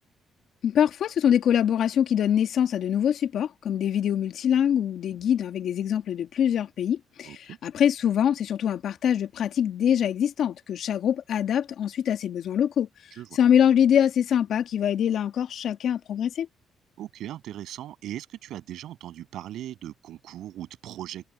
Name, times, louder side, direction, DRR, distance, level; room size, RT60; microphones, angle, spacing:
voice 1, 0.6-12.9 13.3-16.5, left 9 dB, 70° left, 1.7 m, -24 dB
voice 2, 7.2-7.6 13.1-13.4 17.0-21.2, right 12 dB, 80° right, 7.0 m, -39 dB
cardioid pair, 90°, 0 cm